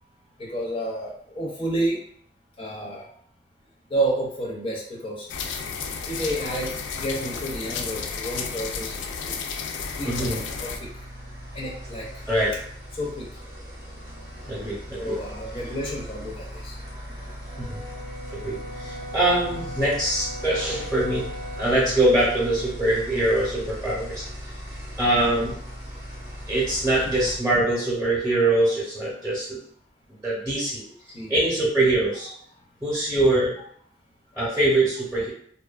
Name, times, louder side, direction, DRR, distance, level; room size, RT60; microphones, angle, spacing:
voice 1, 0.4-2.0 2.6-3.1 3.9-5.3 6.1-9.4 10.0-10.9 11.5-12.1 12.9-13.3 15.0-16.8 31.1-31.3 34.4-34.5, right 1 dB, 30° left, -2 dB, 0.5 m, -30 dB
sound 1, 5.3-10.8, left 5 dB, 90° left, 0.3 m, -32 dB
sound 2, 9.9-27.4, equal, 75° right, 0.9 m, -38 dB
voice 2, 10.0-10.4 12.3-12.5 14.5-15.2 17.6-17.8 18.3-21.3 21.6-24.2 25.0-25.6 26.5-29.6 30.2-30.8 31.3-32.3 32.8-33.6 34.4-35.3, right 1 dB, 5° right, -6 dB, 0.7 m, -23 dB
Brass instrument, 17.5-21.7, equal, 40° right, 0.4 m, -39 dB
2.6 x 2.3 x 2.3 m, 0.63 s
head